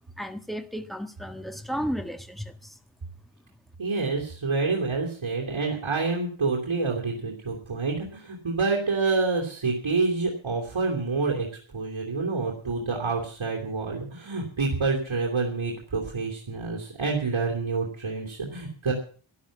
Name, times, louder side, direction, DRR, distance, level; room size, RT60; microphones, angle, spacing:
voice 1, 0.2-2.8, equal, ahead, 1.5 m, -33 dB
voice 2, 3.8-11.5 11.7-18.9, right 4 dB, 70° right, 3.2 m, -27 dB
12.5 x 11.5 x 7.3 m
wide cardioid pair, 80°, 48 cm